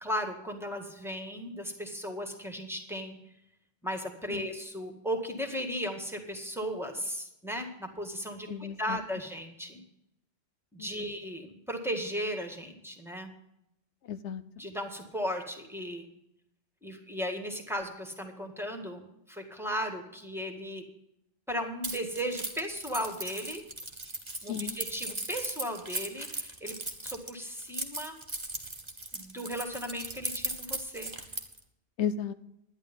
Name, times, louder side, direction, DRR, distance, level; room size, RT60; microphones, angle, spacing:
voice 1, 0.0-3.2 3.8-9.8 10.7-13.3 14.6-16.1 16.8-20.8 21.5-23.6 24.4-26.7 27.0-28.2 29.1-31.1, equal, ahead, 3 dB, 1.8 m, -36 dB
voice 2, 8.5-9.0 10.8-11.1 14.1-14.4 24.5-24.8 32.0-32.3, left 8 dB, 80° left, 12 dB, 1.0 m, -34 dB
Keys jangling, 21.8-31.6, right 2 dB, 25° right, 1.5 m, -37 dB
11.5 x 10.5 x 5.3 m, 0.83 s
omnidirectional pair, 1.2 m